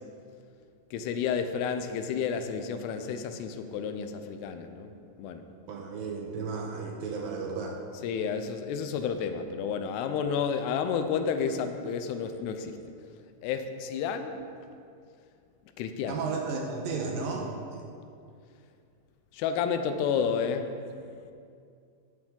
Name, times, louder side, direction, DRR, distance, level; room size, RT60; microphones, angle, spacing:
voice 1, 0.9-4.9 5.2-5.4 8.0-12.7 13.4-14.4 15.8-16.2 19.3-20.7, left 6 dB, 85° left, 8 dB, 2.7 m, -31 dB
voice 2, 5.7-7.8 16.1-17.8, right 4 dB, 75° right, 0 dB, 2.3 m, -34 dB
13.0 x 8.6 x 3.8 m, 2.4 s
omnidirectional pair, 4.7 m